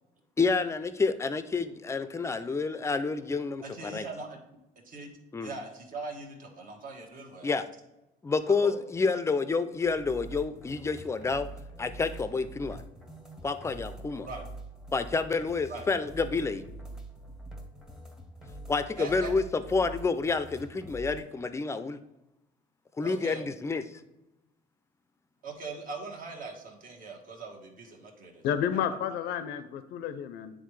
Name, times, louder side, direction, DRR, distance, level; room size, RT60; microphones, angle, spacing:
voice 1, 0.4-4.1 5.3-5.5 7.4-7.6 8.2-11.5 11.8-12.8 13.4-14.3 14.9-16.6 18.7-19.4 19.7-22.0 23.0-23.8, left 4 dB, 15° left, 11 dB, 0.4 m, -29 dB
voice 2, 3.6-4.6 4.8-5.1 5.4-7.5 8.6-8.8 14.2-14.5 15.7-15.9 19.0-19.4 23.0-23.4 25.4-28.4 28.7-29.2, right 3 dB, 55° right, 2 dB, 1.3 m, -41 dB
sound 1, 9.8-21.2, right 1 dB, 5° right, 0.8 m, -45 dB
voice 3, 28.4-30.5, left 9 dB, 75° left, 11 dB, 0.5 m, -31 dB
9.2 x 3.7 x 3.2 m, 0.91 s
cardioid pair, 110°, 17 cm